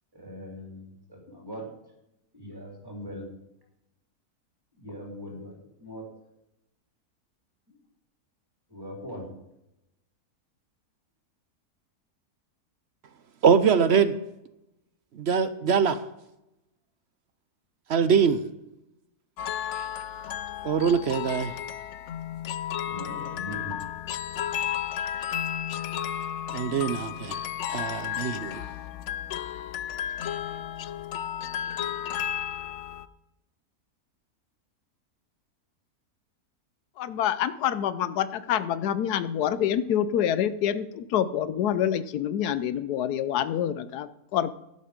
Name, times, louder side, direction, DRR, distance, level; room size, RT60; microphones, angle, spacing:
voice 1, 0.1-1.7 2.3-3.3 4.7-6.1 7.7-7.8 8.7-9.3 21.2-21.3 22.9-23.8, equal, 15° right, -2 dB, 3.7 m, -41 dB
voice 2, 13.4-14.1 15.2-16.0 17.9-18.4 20.6-21.5 26.5-27.4 27.7-28.6, right 6 dB, 60° right, 12 dB, 0.7 m, -23 dB
sound 1, 19.4-33.1, left 10 dB, 65° left, 0.7 m, -33 dB
voice 3, 37.0-44.5, left 10 dB, 90° left, 14 dB, 1.2 m, -27 dB
12.0 x 11.0 x 5.1 m, 0.87 s
omnidirectional pair, 1.6 m